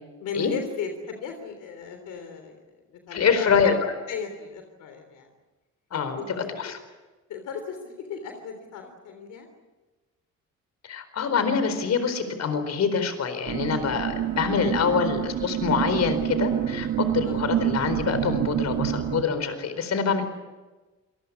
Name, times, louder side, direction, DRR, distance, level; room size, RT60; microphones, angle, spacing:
voice 1, 0.2-2.6 2.9-3.7 4.1-5.3 5.9-6.3 6.6-6.7 7.3-9.5 14.8-14.9 17.3-17.4 19.7-20.1, left 5 dB, 85° left, 6 dB, 3.5 m, -36 dB
voice 2, 3.1-3.9 5.9-6.8 10.8-20.2, left 6 dB, 60° left, 10 dB, 4.4 m, -25 dB
sound 1, 13.5-19.2, right 10 dB, 75° right, 1.7 m, -27 dB
27.5 x 19.5 x 8.5 m, 1.2 s
cardioid pair, 90°, 30 cm